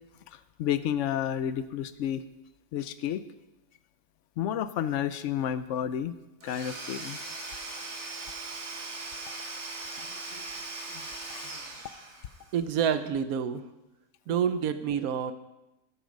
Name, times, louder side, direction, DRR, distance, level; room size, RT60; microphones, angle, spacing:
voice 1, 0.6-2.2 2.7-3.2 4.4-6.1 6.4-7.2 10.0-10.1 10.3-10.5 10.9-11.0 11.3-11.5, left 10 dB, 65° left, 13 dB, 0.8 m, -31 dB
Domestic sounds home sounds / Tools, 6.4-12.5, right 3 dB, 50° right, 1.7 m, -39 dB
voice 2, 12.5-13.6 14.3-15.3, right 8 dB, 70° right, 11 dB, 1.1 m, -28 dB
11.0 x 8.0 x 5.2 m, 0.98 s
omnidirectional pair, 1.6 m